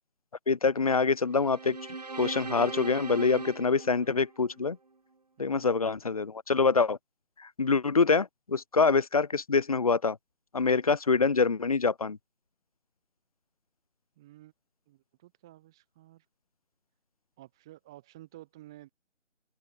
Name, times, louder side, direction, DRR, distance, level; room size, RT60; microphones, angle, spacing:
voice 1, 0.5-1.8 2.2-4.8 5.4-7.0 7.4-10.2 10.5-12.2, left 4 dB, 30° left, 1.3 m, -25 dB
sound 1, 1.3-4.7, right 3 dB, 35° right, 0.9 m, -39 dB
voice 2, 5.4-5.8 14.2-14.5 14.9-16.2 17.4-18.9, right 15 dB, 5° right, 1.1 m, -52 dB
open air
figure-of-eight pair, 165°, 37 cm